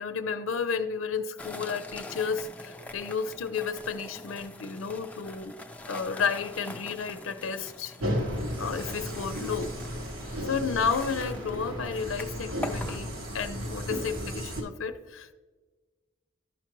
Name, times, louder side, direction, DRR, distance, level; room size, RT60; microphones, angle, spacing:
voice 1, 0.0-5.5 5.9-7.9 8.6-9.7 10.5-15.3, left 5 dB, 80° left, 9 dB, 0.5 m, -32 dB
sound 1, 1.4-13.0, left 2 dB, 5° left, 0.4 m, -44 dB
sound 2, 8.0-14.6, equal, 85° right, 1.3 m, -34 dB
13.0 x 5.8 x 3.0 m, 1.4 s
head